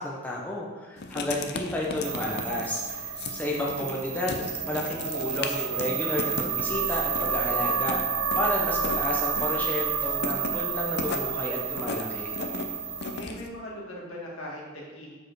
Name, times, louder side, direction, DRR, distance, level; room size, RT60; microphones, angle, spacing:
voice 1, 0.0-8.0 8.3-12.3, left 1 dB, 10° left, -3 dB, 0.7 m, -32 dB
Writing, 1.0-13.5, left 3 dB, 50° left, 0.5 m, -37 dB
sound 1, 2.0-13.2, right 6 dB, 90° right, 0.6 m, -30 dB
voice 2, 13.1-15.2, equal, 65° left, -3 dB, 1.9 m, -40 dB
6.7 x 4.8 x 4.6 m, 1.2 s
head